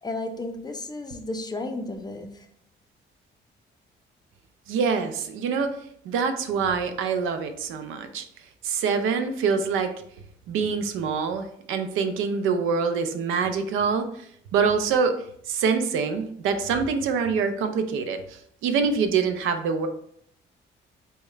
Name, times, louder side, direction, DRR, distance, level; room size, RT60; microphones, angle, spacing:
voice 1, 0.0-2.5, left 2 dB, 20° left, 5 dB, 0.5 m, -33 dB
voice 2, 4.7-5.7 6.0-8.2 8.6-9.9 10.5-14.3 14.5-15.1 15.5-19.9, right 5 dB, 90° right, 8 dB, 0.5 m, -25 dB
4.6 x 2.1 x 3.2 m, 0.67 s
cardioid pair, 90°, 20 cm